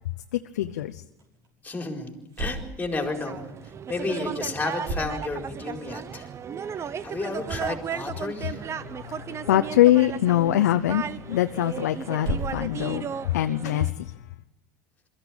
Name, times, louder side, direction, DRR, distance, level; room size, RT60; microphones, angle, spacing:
voice 1, 0.3-1.0 8.8-14.1, left 13 dB, 85° left, 0.7 m, -23 dB
sound 1, 0.6-14.2, right 2 dB, 50° right, 5.7 m, -41 dB
voice 2, 1.6-3.5 3.9-6.3 6.7-8.6, left 3 dB, 15° left, 4.5 m, -32 dB
sound 2, 2.9-13.9, right 7 dB, 30° right, 0.9 m, -35 dB
22.5 x 14.5 x 8.8 m
hypercardioid pair, 95°, 9 cm